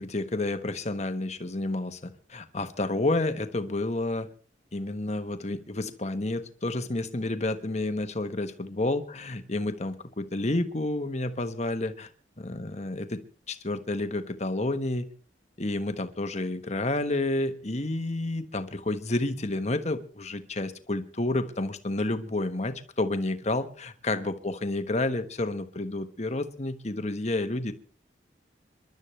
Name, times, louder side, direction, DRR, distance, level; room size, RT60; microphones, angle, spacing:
voice 1, 0.0-4.3 4.7-12.1 12.4-13.2 13.5-15.1 15.6-27.7, left 2 dB, 35° left, 9 dB, 1.3 m, -30 dB
28.0 x 12.0 x 3.3 m, 0.39 s
head